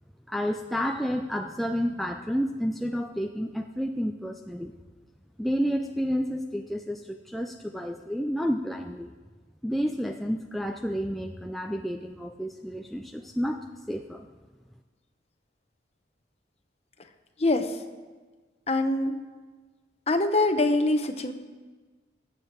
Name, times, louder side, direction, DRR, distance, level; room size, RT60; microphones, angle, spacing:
voice 1, 0.3-4.7 5.4-9.1 9.6-14.3, equal, ahead, 3 dB, 0.4 m, -30 dB
voice 2, 17.4-17.8 18.7-19.2 20.1-21.3, left 2 dB, 35° left, 8 dB, 0.9 m, -24 dB
20.0 x 7.7 x 4.6 m, 1.4 s
head